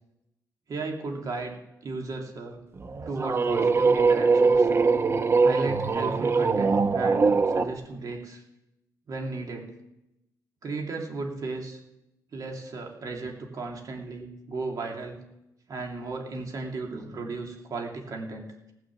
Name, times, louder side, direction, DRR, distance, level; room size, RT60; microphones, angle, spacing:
voice 1, 0.7-2.6 3.0-4.7 5.4-8.4 9.1-9.7 10.6-11.8 12.3-15.2 15.7-18.7, right 3 dB, 55° right, 1 dB, 2.6 m, -35 dB
sound 1, 2.8-7.7, right 4 dB, 35° right, 0.8 m, -22 dB
18.5 x 6.6 x 7.4 m, 0.90 s
cardioid pair, 95°, 7 cm